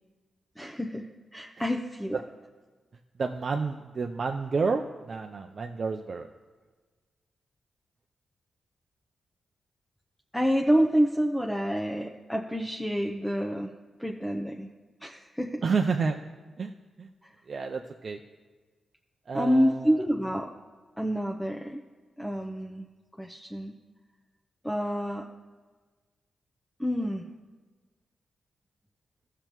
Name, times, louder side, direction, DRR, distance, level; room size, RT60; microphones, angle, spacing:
voice 1, 0.6-2.2 10.3-13.7 14.0-14.7 15.0-15.6 19.3-20.5 21.0-21.8 22.2-22.9 23.2-23.8 24.6-25.3 26.8-27.3, equal, 5° left, 1 dB, 0.7 m, -28 dB
voice 2, 3.2-6.3 15.6-16.2 16.6-17.1 17.5-18.2 19.3-20.0, right 4 dB, 60° right, 3 dB, 0.5 m, -30 dB
14.5 x 6.7 x 3.0 m, 1.4 s
supercardioid pair, 45°, 0 cm